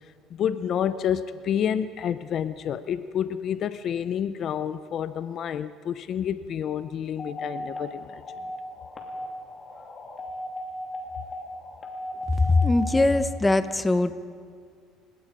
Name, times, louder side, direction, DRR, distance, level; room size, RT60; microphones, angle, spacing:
voice 1, 0.3-8.2, left 9 dB, 50° left, 14 dB, 0.6 m, -29 dB
sound 1, 7.2-13.1, left 1 dB, 30° left, 2.9 m, -36 dB
voice 2, 12.4-14.1, left 2 dB, 10° left, 12 dB, 0.8 m, -21 dB
29.5 x 18.0 x 5.1 m, 2.1 s
cardioid pair, 125°, 0 cm